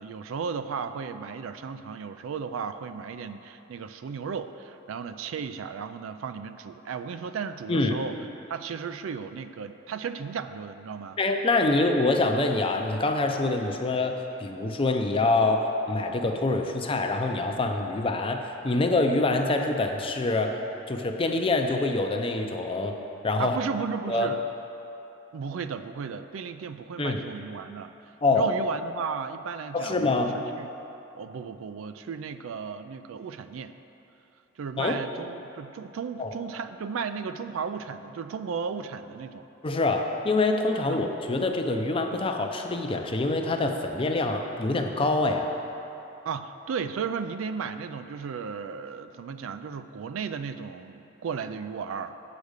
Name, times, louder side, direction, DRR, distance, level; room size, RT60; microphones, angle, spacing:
voice 1, 0.0-8.2 8.5-11.2 23.4-24.4 25.3-27.9 28.3-30.7 31.1-33.7 34.6-39.4 40.9-41.0 46.3-52.1, right 6 dB, 80° right, 11 dB, 0.4 m, -35 dB
voice 2, 11.2-20.6 20.9-23.0 23.2-23.6 24.1-24.3 27.0-27.2 28.2-28.5 29.7-30.4 34.8-35.0 36.2-36.3 39.6-45.5, left 2 dB, 25° left, 4 dB, 0.5 m, -25 dB
8.2 x 5.1 x 6.5 m, 3.0 s
head